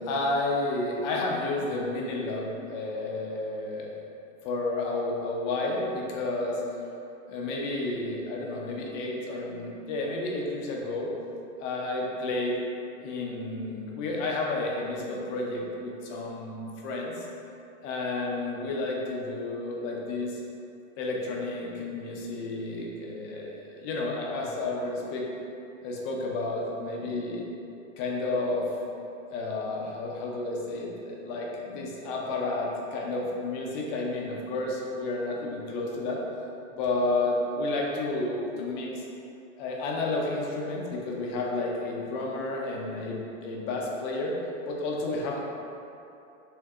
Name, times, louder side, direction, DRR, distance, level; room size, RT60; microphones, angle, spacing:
voice 1, 0.0-3.9 4.4-6.6 7.3-11.1 11.6-12.6 13.0-17.3 17.8-20.4 21.0-25.3 25.8-27.4 28.0-28.7 29.3-36.2 36.7-39.0 39.6-44.4 44.7-45.4, left 2 dB, 30° left, -2 dB, 0.6 m, -31 dB
6.4 x 2.2 x 3.6 m, 2.8 s
supercardioid pair, 145°, 39 cm